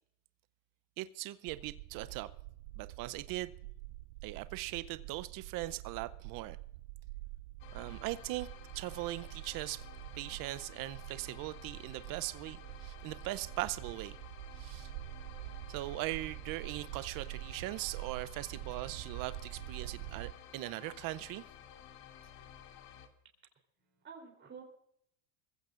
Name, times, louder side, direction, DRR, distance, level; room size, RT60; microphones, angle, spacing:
voice 1, 1.0-2.3 2.8-3.5 4.2-6.6 7.7-8.5 8.7-9.8 10.1-14.2 14.6-14.9 15.7-21.4, right 17 dB, 45° right, 0.7 m, -40 dB
sound 1, 1.5-20.3, right 19 dB, 85° right, 0.5 m, -46 dB
sound 2, 7.6-23.1, left 9 dB, 70° left, 2.5 m, -54 dB
voice 2, 23.8-24.6, right 6 dB, 25° right, 3.5 m, -51 dB
24.5 x 15.5 x 2.5 m
supercardioid pair, 120°, 46 cm